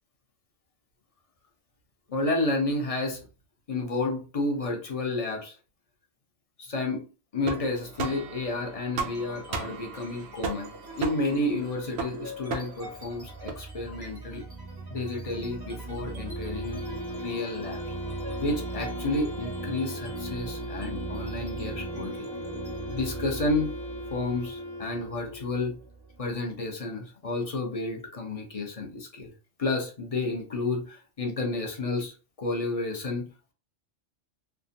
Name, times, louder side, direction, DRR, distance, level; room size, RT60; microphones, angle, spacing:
voice 1, 2.1-3.2 3.7-5.6 6.6-7.0 7.3-14.4 14.9-16.8 17.1-17.9 18.4-22.3 22.9-23.7 24.1-25.8 26.2-29.3 29.6-33.3, left 2 dB, 35° left, 1 dB, 0.7 m, -31 dB
sound 1, 7.4-13.5, right 4 dB, 65° right, 0.8 m, -37 dB
sound 2, 9.1-9.6 9.9-26.5, right 2 dB, 25° right, 0.6 m, -39 dB
Wind instrument woodwind instrument, 16.3-25.5, left 1 dB, 75° left, 1.1 m, -39 dB
3.3 x 2.1 x 2.6 m, 0.33 s
omnidirectional pair, 1.2 m